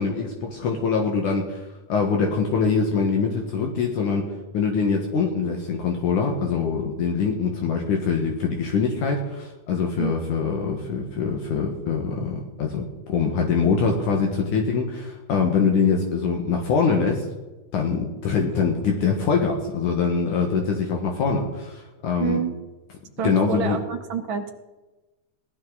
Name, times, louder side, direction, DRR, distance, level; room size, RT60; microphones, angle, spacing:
voice 1, 0.0-4.3 4.5-17.3 17.7-22.4 23.2-23.8, left 5 dB, 70° left, 1 dB, 2.9 m, -24 dB
voice 2, 22.2-22.5 23.2-24.5, right 7 dB, 50° right, 4 dB, 1.6 m, -27 dB
19.0 x 12.5 x 4.0 m, 1.1 s
omnidirectional pair, 3.8 m